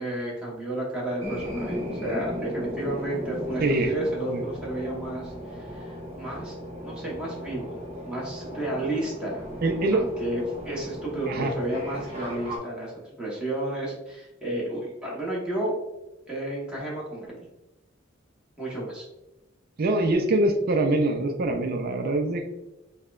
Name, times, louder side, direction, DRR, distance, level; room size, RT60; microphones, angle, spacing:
voice 1, 0.0-6.5 6.8-9.5 9.9-15.8 16.3-17.4 18.6-19.1, right 1 dB, 5° right, -6 dB, 1.0 m, -32 dB
sound 1, 1.2-12.6, left 1 dB, 30° right, 1.1 m, -36 dB
voice 2, 3.6-3.9 4.3-4.5 9.6-10.0 11.3-11.5 19.8-22.4, right 2 dB, 50° right, 5 dB, 0.4 m, -24 dB
5.4 x 2.1 x 2.4 m, 0.99 s
head